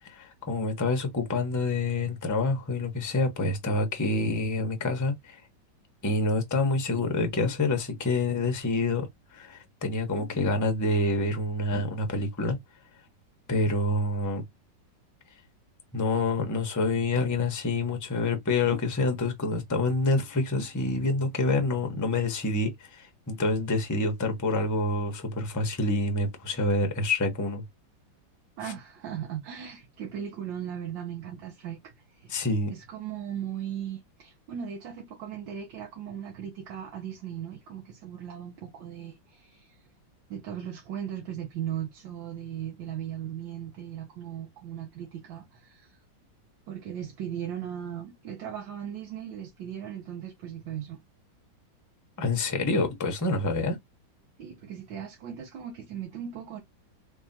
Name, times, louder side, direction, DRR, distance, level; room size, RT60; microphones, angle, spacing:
voice 1, 0.1-5.4 6.0-9.1 9.3-12.6 13.5-14.4 15.9-27.6 28.6-28.7 32.3-32.7 52.2-53.8, left 2 dB, 20° left, 0.5 m, -27 dB
voice 2, 28.6-32.4 32.7-39.8 40.3-46.0 46.7-51.0 54.4-56.6, right 9 dB, 75° right, 1.6 m, -38 dB
3.5 x 3.5 x 2.6 m
omnidirectional pair, 2.1 m